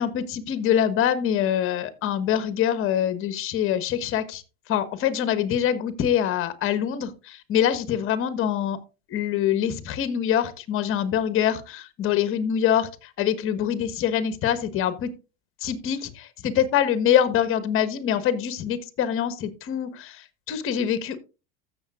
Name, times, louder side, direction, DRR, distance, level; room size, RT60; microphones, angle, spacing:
voice 1, 0.0-4.4 4.7-8.8 9.1-15.1 15.6-21.2, left 9 dB, 40° left, 13 dB, 1.4 m, -24 dB
14.5 x 7.1 x 2.5 m, 0.31 s
hypercardioid pair, 105°, 31 cm